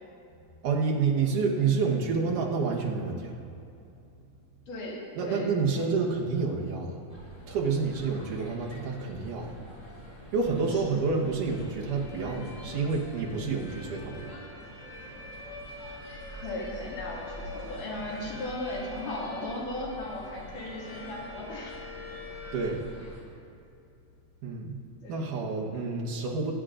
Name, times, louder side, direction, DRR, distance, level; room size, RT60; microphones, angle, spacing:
voice 1, 0.6-3.3 5.2-6.9 7.5-9.5 10.3-14.3 22.5-22.8 24.4-24.8 25.1-26.5, right 4 dB, 75° right, -2 dB, 2.7 m, -28 dB
voice 2, 4.7-5.9 10.7-11.0 16.4-21.8 22.1-22.3 25.0-25.4 25.6-25.8, left 1 dB, 75° left, -5 dB, 3.7 m, -37 dB
sound 1, 7.1-23.2, equal, 15° left, 1.9 m, -46 dB
sound 2, 11.5-22.7, left 2 dB, 40° left, 3.3 m, -46 dB
21.0 x 10.0 x 2.5 m, 2.7 s
omnidirectional pair, 3.8 m